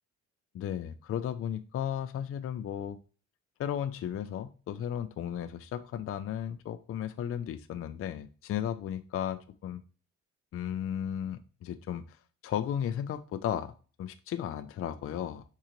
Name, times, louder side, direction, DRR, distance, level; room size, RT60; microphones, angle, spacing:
voice 1, 0.5-3.0 3.6-9.8 10.5-12.2 12.4-13.7 14.0-15.4, left 9 dB, 50° left, 9 dB, 0.4 m, -35 dB
4.7 x 3.8 x 2.9 m, 0.38 s
cardioid pair, 90°, 30 cm